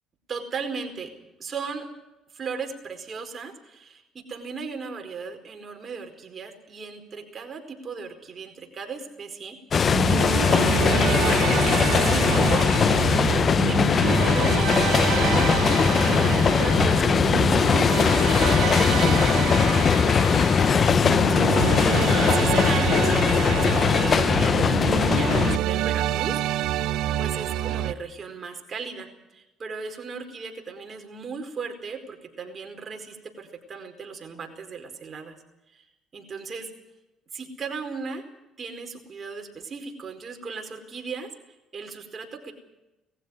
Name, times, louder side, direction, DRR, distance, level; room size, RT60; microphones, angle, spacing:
voice 1, 0.3-1.1 1.4-1.9 2.3-18.7 20.8-21.6 21.9-26.4 27.2-35.4 35.7-35.8 36.1-36.7 37.3-38.2 38.6-41.3 41.7-42.5, right 5 dB, 40° right, 5 dB, 4.6 m, -37 dB
sound 1, 9.7-25.6, left 6 dB, 45° left, 0.7 m, -20 dB
sound 2, 9.9-27.9, right 12 dB, 80° right, 0.9 m, -27 dB
20.0 x 15.0 x 9.8 m, 0.96 s
supercardioid pair, 85°, 0 cm